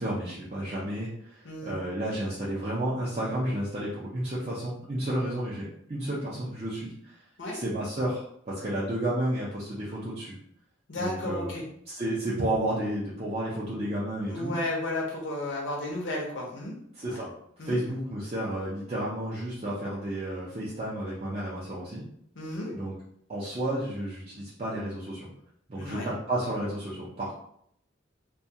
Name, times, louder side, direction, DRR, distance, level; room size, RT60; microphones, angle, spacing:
voice 1, 0.0-7.2 7.5-10.3 11.0-11.6 11.9-14.5 17.0-17.3 17.6-22.0 22.7-22.9 23.3-25.3 25.7-27.3, right 1 dB, 30° right, -8 dB, 0.5 m, -32 dB
voice 2, 1.4-1.8 7.4-7.6 10.9-11.6 14.3-16.7 17.1-17.2 17.6-17.8 22.4-22.7 25.7-26.1, left 1 dB, 65° left, -3 dB, 0.6 m, -33 dB
2.2 x 2.2 x 2.7 m, 0.68 s
head